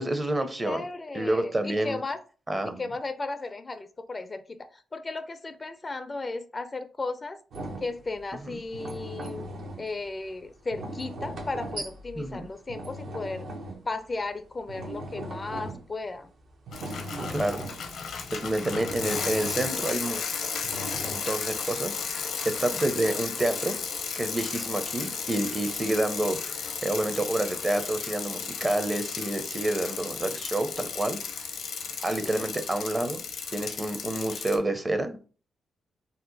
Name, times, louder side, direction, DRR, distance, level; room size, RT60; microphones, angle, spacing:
voice 1, 0.0-0.8 1.1-2.0 2.5-2.8 8.4-8.6 12.2-12.5 17.3-17.6 18.3-20.2 21.0-23.8 24.1-31.2 32.0-33.2 33.5-35.3, right 1 dB, 25° right, 0.6 m, -29 dB
voice 2, 0.6-2.2 2.7-7.4 7.8-9.5 9.8-13.5 13.9-16.3 32.1-32.5, left 3 dB, 35° left, 0.3 m, -35 dB
sound 1, 7.5-14.3 14.6-16.1 16.4-18.2 18.6-19.9 20.6-21.2, right 1 dB, 70° right, 0.8 m, -39 dB
Bicycle, 16.7-34.6, left 6 dB, 75° left, 0.6 m, -34 dB
2.8 x 2.1 x 3.8 m
cardioid pair, 65°, 0 cm